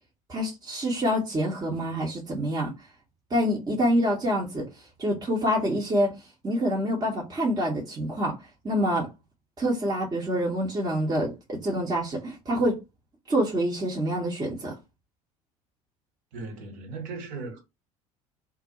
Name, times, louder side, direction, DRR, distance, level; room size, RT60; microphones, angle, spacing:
voice 1, 0.3-2.7 3.3-4.7 5.0-6.1 6.4-8.4 8.6-9.1 9.6-12.8 13.3-14.7, equal, 20° right, 0.9 m, -26 dB
voice 2, 16.3-17.6, right 4 dB, 50° right, 1.1 m, -37 dB
2.4 x 2.1 x 2.9 m
figure-of-eight pair, 65°, 18 cm